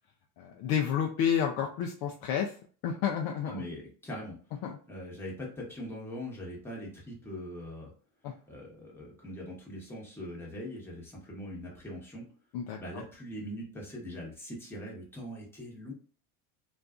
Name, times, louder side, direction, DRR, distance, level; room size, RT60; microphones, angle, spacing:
voice 1, 0.4-2.6 2.8-3.6 4.6-4.8 8.2-8.3 12.5-12.8, left 8 dB, 65° left, 2 dB, 0.5 m, -30 dB
voice 2, 3.5-4.4 4.9-7.9 8.5-12.3 12.8-15.9, equal, 5° left, -4 dB, 0.9 m, -41 dB
2.5 x 2.3 x 2.3 m, 0.41 s
supercardioid pair, 110°, 41 cm